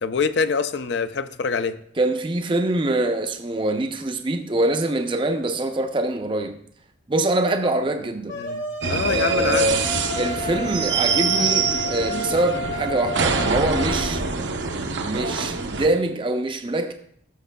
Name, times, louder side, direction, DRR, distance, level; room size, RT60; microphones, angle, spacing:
voice 1, 0.0-1.8 8.3-9.7, left 5 dB, 65° left, 12 dB, 0.5 m, -25 dB
voice 2, 2.0-6.6 7.1-8.4 9.1-9.8 10.2-14.2 15.0-16.9, right 2 dB, 25° right, 6 dB, 0.5 m, -24 dB
sound 1, 8.3-14.1, left 1 dB, 85° left, 1.5 m, -31 dB
sound 2, 8.8-15.9, right 5 dB, 75° right, 0.7 m, -25 dB
13.0 x 6.5 x 2.2 m, 0.66 s
head